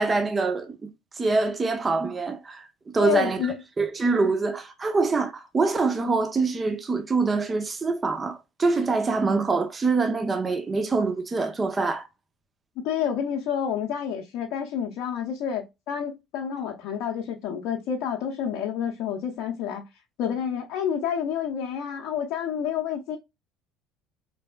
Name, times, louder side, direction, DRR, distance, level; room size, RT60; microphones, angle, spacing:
voice 1, 0.0-2.7 2.9-3.4 3.8-12.1, right 3 dB, 30° right, 0.8 m, -25 dB
voice 2, 3.0-3.5 12.8-19.8 20.2-23.2, left 8 dB, 65° left, 0.7 m, -29 dB
4.0 x 3.3 x 2.2 m
hypercardioid pair, 70°, 0 cm